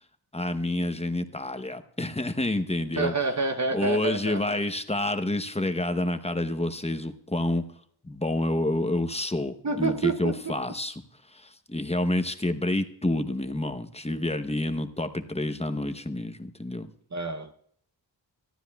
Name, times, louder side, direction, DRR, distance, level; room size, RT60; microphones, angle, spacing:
voice 1, 0.3-3.1 3.7-7.6 8.0-10.9 11.7-16.9, left 1 dB, 15° left, 8 dB, 0.9 m, -28 dB
voice 2, 3.0-4.6 9.6-10.6 17.1-17.5, right 3 dB, 40° right, 8 dB, 0.8 m, -28 dB
25.5 x 12.5 x 2.3 m, 0.62 s
wide cardioid pair, 85°, 44 cm